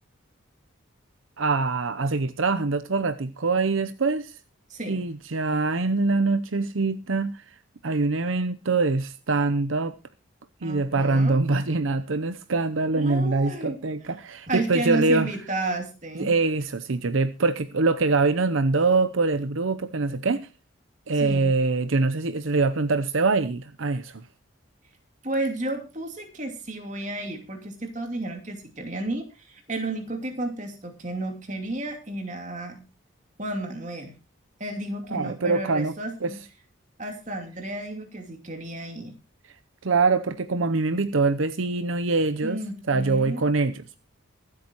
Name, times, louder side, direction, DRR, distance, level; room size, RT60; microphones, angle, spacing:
voice 1, 1.4-4.4 4.9-7.4 7.8-9.9 10.6-15.3 16.1-20.5 21.1-24.2 35.1-35.9 36.2-36.3 39.8-42.6 42.9-43.8, right 3 dB, 75° right, 0.8 m, -24 dB
voice 2, 4.7-5.1 10.6-11.4 13.0-13.8 14.5-16.3 21.1-21.6 25.2-32.8 33.4-34.1 34.6-36.4 37.0-39.1 42.4-43.4, right 2 dB, 35° right, 2.7 m, -32 dB
24.0 x 8.5 x 3.0 m
head